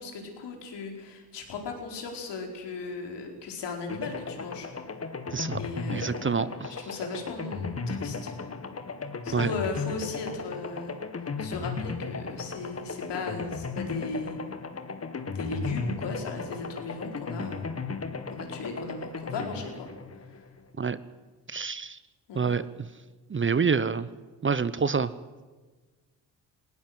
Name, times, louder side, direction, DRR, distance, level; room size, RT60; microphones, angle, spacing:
voice 1, 0.0-4.7 5.6-6.3 6.7-8.3 9.2-10.9 11.4-14.4 15.3-17.6 18.3-19.9 20.2-20.4 22.3-22.6, left 3 dB, 70° left, 2 dB, 4.5 m, -37 dB
sound 1, 3.9-20.8, left 4 dB, 35° left, 1.9 m, -36 dB
voice 2, 5.3-5.6 5.9-6.7 9.3-9.5 20.8-21.0 21.5-22.0 22.3-22.7 23.3-24.1 24.4-25.1, right 5 dB, 30° right, 16 dB, 0.9 m, -27 dB
19.5 x 17.5 x 7.9 m, 1.3 s
supercardioid pair, 60°, 43 cm